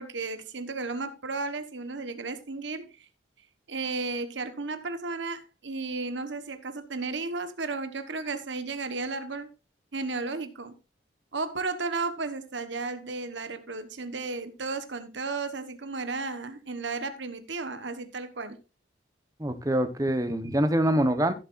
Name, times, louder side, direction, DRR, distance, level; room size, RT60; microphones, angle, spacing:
voice 1, 0.0-2.9 3.7-9.5 9.9-10.7 11.3-18.6, right 3 dB, 70° right, 1.2 m, -34 dB
voice 2, 19.4-21.3, right 1 dB, 20° right, 0.9 m, -25 dB
15.0 x 7.6 x 2.5 m
head